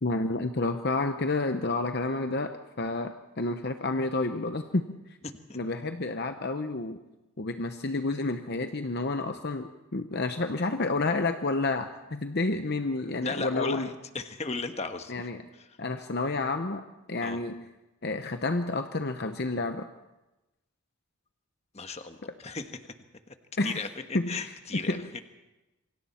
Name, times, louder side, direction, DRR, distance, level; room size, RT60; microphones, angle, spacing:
voice 1, 0.0-5.2 5.5-7.0 7.4-13.9 15.1-15.4 15.8-17.7 18.0-19.9 22.3-22.4 23.6-23.8 24.1-25.1, left 2 dB, 45° left, 7 dB, 0.9 m, -30 dB
voice 2, 5.2-5.6 13.2-15.1 17.2-17.4 21.7-22.7 23.3-23.4 23.6-23.9 24.3-25.2, left 4 dB, 30° left, 7 dB, 1.3 m, -36 dB
27.5 x 24.5 x 4.4 m, 1.0 s
head